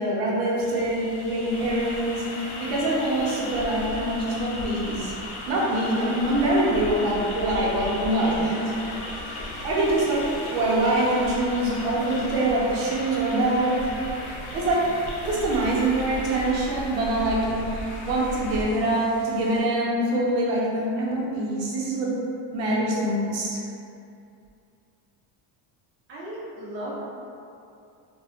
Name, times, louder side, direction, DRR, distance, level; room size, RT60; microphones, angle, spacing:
voice 1, 0.0-5.1 5.5-8.8 9.3-10.2 10.5-13.8 14.5-14.8 15.2-22.1 22.5-23.6, right 1 dB, 85° right, -5 dB, 0.8 m, -24 dB
sound 1, 0.6-19.6, left 1 dB, 35° left, 0.4 m, -41 dB
Traffic noise roadway noise, 1.5-18.6, left 1 dB, 90° left, 0.7 m, -37 dB
voice 2, 26.1-27.0, right 1 dB, 30° right, -7 dB, 0.4 m, -35 dB
2.9 x 2.3 x 2.4 m, 2.6 s
cardioid pair, 160°, 46 cm